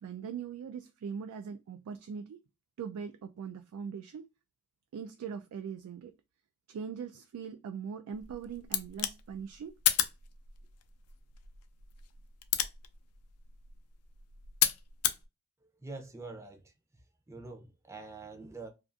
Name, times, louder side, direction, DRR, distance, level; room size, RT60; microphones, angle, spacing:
voice 1, 0.0-2.4 2.8-4.2 4.9-6.1 6.7-9.8, right 6 dB, 85° right, 0.3 m, -41 dB
sound 1, 8.1-15.2, left 11 dB, 85° left, 0.4 m, -34 dB
voice 2, 15.8-16.7 17.3-18.7, right 3 dB, 15° right, 0.5 m, -45 dB
2.4 x 2.4 x 2.4 m
head